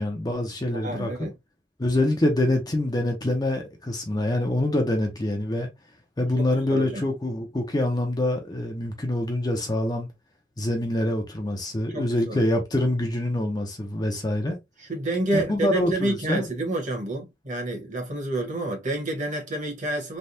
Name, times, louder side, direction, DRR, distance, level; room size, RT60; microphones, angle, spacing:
voice 1, 0.0-1.3 1.8-5.7 6.2-10.1 10.6-14.6 15.3-16.5, left 1 dB, 20° left, 0.6 m, -25 dB
voice 2, 0.7-1.3 6.4-7.0 11.9-12.6 14.8-20.2, right 2 dB, 40° right, 1.3 m, -29 dB
3.3 x 2.3 x 2.7 m
head